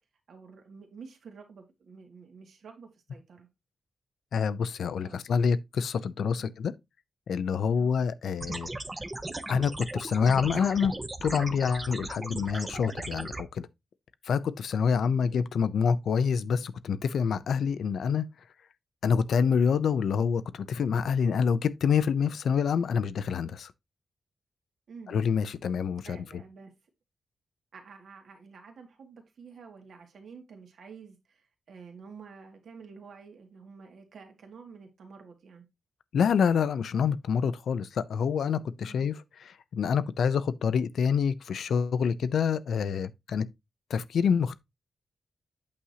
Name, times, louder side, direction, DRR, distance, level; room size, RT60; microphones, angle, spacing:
voice 1, 0.3-3.5 5.0-5.2 6.4-6.5 7.8-8.4 15.0-15.4 24.9-25.2 26.0-26.7 27.7-35.7 38.9-39.1, right 5 dB, 70° right, 2.0 m, -49 dB
voice 2, 4.3-6.7 7.3-8.7 9.5-10.9 11.2-13.7 14.3-18.3 19.0-23.7 25.1-26.2 36.1-43.5 43.9-44.6, left 6 dB, 85° left, 0.6 m, -27 dB
sound 1, 8.4-13.4, right 2 dB, 20° right, 0.7 m, -37 dB
8.6 x 6.2 x 2.8 m
wide cardioid pair, 165°, 0 cm